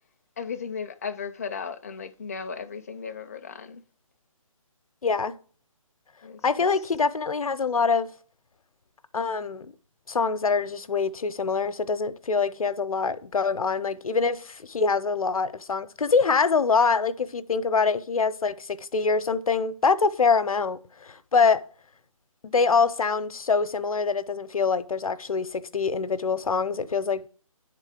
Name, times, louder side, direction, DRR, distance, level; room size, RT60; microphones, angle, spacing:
voice 1, 0.4-3.8 6.2-6.4, left 6 dB, 25° left, 0.4 m, -35 dB
voice 2, 5.0-5.4 6.4-8.1 9.1-9.7 10.1-21.6 22.4-27.2, left 5 dB, 80° left, 0.7 m, -24 dB
10.0 x 3.7 x 4.9 m
figure-of-eight pair, 160°, 18 cm